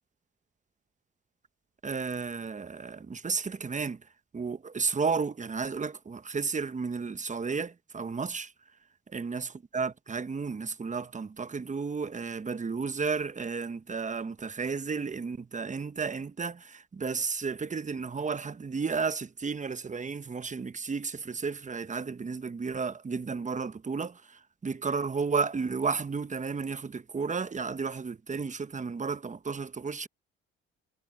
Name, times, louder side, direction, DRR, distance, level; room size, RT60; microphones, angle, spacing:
voice 1, 1.8-4.0 4.3-8.5 9.1-9.5 9.7-30.1, right 5 dB, 25° right, 1.2 m, -33 dB
supercardioid pair, 70°, 30 cm